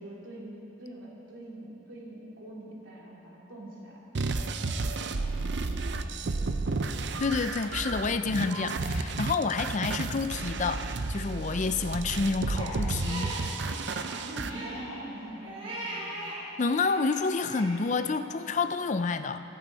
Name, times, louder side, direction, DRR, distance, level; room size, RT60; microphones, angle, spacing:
voice 1, 0.0-4.0 4.3-6.9 14.2-16.2, right 1 dB, 75° right, -4 dB, 3.0 m, -44 dB
sound 1, 4.1-14.5, right 3 dB, 60° right, 0.6 m, -32 dB
voice 2, 7.2-13.4 16.6-19.4, left 4 dB, 35° left, 10 dB, 0.4 m, -29 dB
Crying sobbing, 12.5-16.4 16.7-17.8, right 1 dB, 30° right, 3.7 m, -39 dB
25.0 x 8.7 x 4.1 m, 2.9 s
head